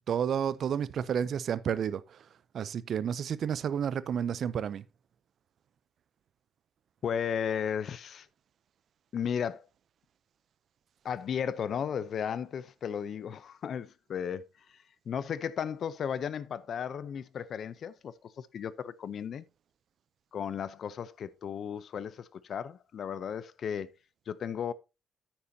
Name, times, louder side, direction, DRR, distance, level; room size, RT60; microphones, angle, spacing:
voice 1, 0.1-2.3 2.5-4.8, right 8 dB, 55° right, 0.4 m, -31 dB
voice 2, 7.0-8.3 9.1-9.6 11.0-19.4 20.3-23.9 24.3-24.7, left 8 dB, 50° left, 0.5 m, -35 dB
9.5 x 8.8 x 2.7 m
cardioid pair, 150°, 0 cm